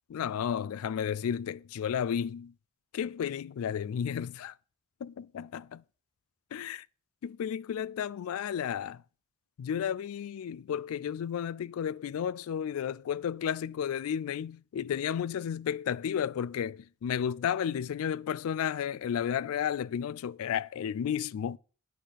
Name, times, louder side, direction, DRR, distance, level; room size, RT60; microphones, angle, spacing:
voice 1, 0.1-2.5 2.9-4.6 5.0-5.8 6.5-6.9 7.2-9.0 9.6-21.6, left 8 dB, 75° left, 0.3 m, -32 dB
8.9 x 5.1 x 5.6 m
head